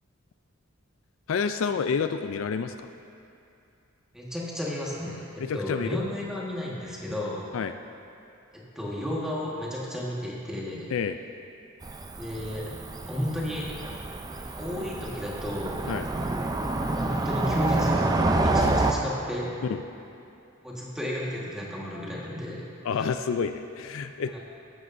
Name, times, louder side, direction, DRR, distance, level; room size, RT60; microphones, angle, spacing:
voice 1, 1.3-2.9 5.4-6.1 7.5-7.8 10.9-11.2 15.9-16.1 18.6-18.7 19.6-19.8 22.8-24.4, left 6 dB, 70° left, 9 dB, 0.4 m, -29 dB
voice 2, 4.1-5.3 5.5-7.5 8.5-10.9 12.2-12.7 13.0-13.7 14.6-15.9 16.9-18.1 18.4-19.5 20.6-22.7 24.3-24.4, left 1 dB, 5° right, -5 dB, 1.5 m, -33 dB
Cricket / Motor vehicle (road), 11.8-18.9, right 2 dB, 20° right, 0.5 m, -28 dB
14.0 x 11.0 x 2.6 m, 2.6 s
head